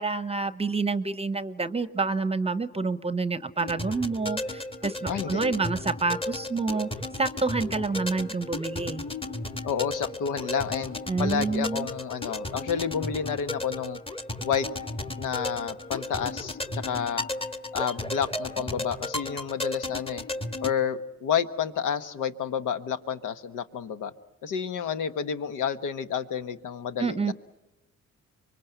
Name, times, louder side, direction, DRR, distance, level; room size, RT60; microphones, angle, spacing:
voice 1, 0.0-6.9 7.2-9.0 11.1-11.9 27.0-27.3, right 4 dB, 20° right, 13 dB, 0.8 m, -28 dB
sound 1, 3.6-20.7, left 2 dB, 20° left, 1.4 m, -34 dB
voice 2, 5.1-5.6 9.6-14.0 14.4-14.7 15.2-17.3 17.7-20.3 20.6-24.1 24.4-27.3, left 7 dB, 90° left, 11 dB, 1.2 m, -30 dB
25.5 x 23.5 x 8.1 m, 0.97 s
cardioid pair, 90°, 30 cm